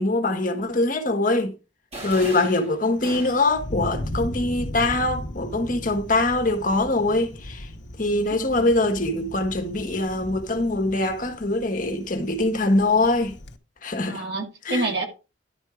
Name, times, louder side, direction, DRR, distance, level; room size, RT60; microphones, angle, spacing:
voice 1, 0.0-1.5 2.0-7.7 8.0-13.4 13.8-14.2 14.6-14.9, left 2 dB, 45° left, 1.3 m, -23 dB
sound 1, 1.9-3.7, right 1 dB, 35° right, 3.4 m, -38 dB
Thunder, 2.9-13.6, left 1 dB, 65° left, 1.0 m, -37 dB
voice 2, 8.3-8.7 14.1-15.1, right 2 dB, 60° right, 2.0 m, -28 dB
11.0 x 4.5 x 4.8 m
head